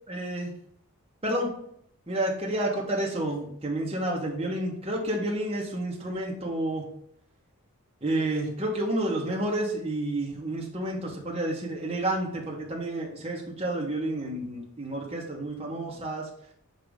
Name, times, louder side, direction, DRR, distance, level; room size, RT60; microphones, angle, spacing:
voice 1, 0.1-0.5 1.2-1.5 2.1-6.8 8.0-16.3, right 1 dB, 25° right, -2 dB, 1.4 m, -30 dB
6.7 x 3.0 x 5.1 m, 0.66 s
head